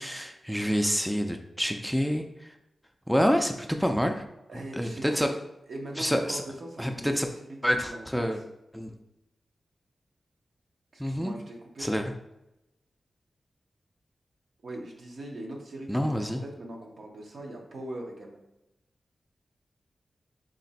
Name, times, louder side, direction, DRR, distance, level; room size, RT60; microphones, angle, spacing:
voice 1, 0.0-2.5 3.1-4.2 4.7-5.3 6.0-6.4 6.8-7.3 7.6-8.4 8.7-8.9 11.0-11.3 11.8-12.0 15.9-16.4, equal, ahead, 4 dB, 0.4 m, -27 dB
voice 2, 4.5-5.4 5.7-7.2 7.7-8.3 10.9-11.9 14.6-18.4, right 1 dB, 70° right, 0 dB, 0.8 m, -41 dB
3.2 x 2.5 x 4.0 m, 0.88 s
cardioid pair, 55°, 0 cm